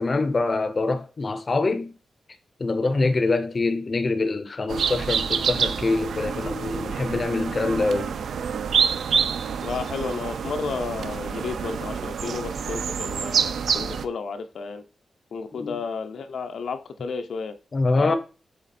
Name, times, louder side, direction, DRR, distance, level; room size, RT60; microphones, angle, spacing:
voice 1, 0.0-1.9 2.6-8.1 15.5-15.8 17.7-18.2, left 3 dB, 30° left, 0.6 m, -24 dB
sound 1, 4.7-14.1, right 6 dB, 85° right, 0.4 m, -27 dB
voice 2, 9.6-14.8 15.3-17.6 18.0-18.2, left 5 dB, 75° left, 0.6 m, -32 dB
7.4 x 3.6 x 4.2 m
wide cardioid pair, 180°, 0 cm